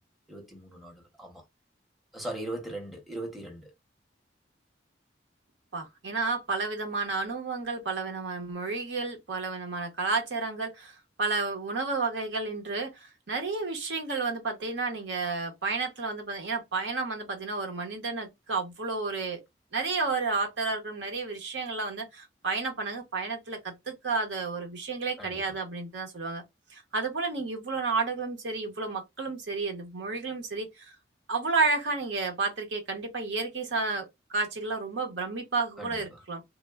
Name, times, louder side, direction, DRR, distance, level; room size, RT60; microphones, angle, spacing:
voice 1, 0.3-1.4 2.1-3.7 25.2-25.4 35.8-35.9, right 1 dB, ahead, 0.7 m, -39 dB
voice 2, 5.7-19.4 19.7-26.4 26.7-30.9 31.3-36.4, right 3 dB, 75° right, 0.8 m, -31 dB
3.1 x 2.0 x 2.2 m
head